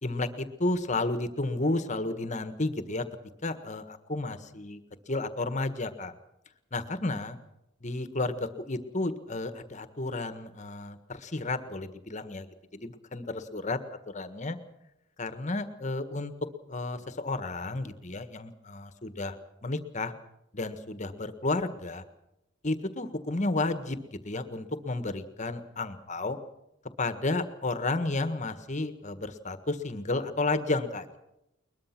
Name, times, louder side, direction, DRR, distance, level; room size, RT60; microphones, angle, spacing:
voice 1, 0.0-3.0 3.4-4.8 5.1-6.1 6.7-7.4 7.8-12.5 12.7-13.8 14.1-14.6 15.2-16.3 16.7-19.4 19.6-20.1 20.5-22.0 22.6-26.4 27.0-31.2, left 2 dB, 35° left, 10 dB, 1.6 m, -32 dB
21.5 x 21.5 x 6.1 m, 0.87 s
head